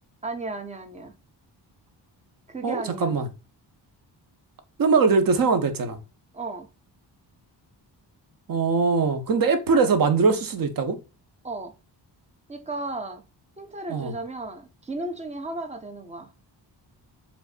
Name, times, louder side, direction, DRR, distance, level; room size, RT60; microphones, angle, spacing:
voice 1, 0.2-1.1 2.5-3.1 6.3-6.7 11.4-11.7 12.5-13.2 13.6-16.3, right 2 dB, 15° right, 0.5 m, -34 dB
voice 2, 2.6-3.3 4.8-6.0 8.5-11.0 13.9-14.1, right 4 dB, 50° right, 0.8 m, -21 dB
4.9 x 3.3 x 2.4 m
wide cardioid pair, 175°, 43 cm